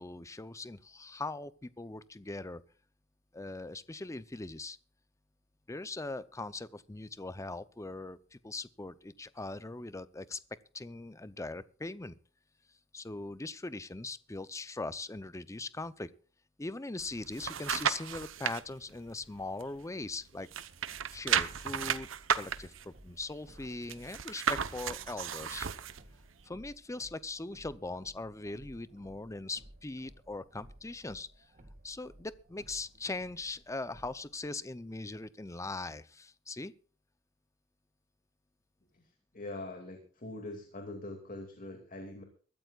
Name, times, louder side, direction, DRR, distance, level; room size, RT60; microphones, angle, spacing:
voice 1, 0.0-2.6 3.3-4.8 5.7-10.4 10.7-12.2 12.9-16.1 16.6-20.5 21.1-22.1 22.3-25.7 26.4-31.3 31.8-36.7, left 2 dB, 15° left, 0.6 m, -40 dB
sound 1, 17.0-18.6 19.1-20.2 20.5-26.0 26.5-26.6, right 7 dB, 70° right, 0.9 m, -34 dB
sound 2, 20.9-34.5, right 1 dB, 40° right, 2.1 m, -57 dB
voice 2, 38.9-42.2, left 2 dB, 45° left, 2.3 m, -43 dB
23.0 x 13.5 x 2.4 m
head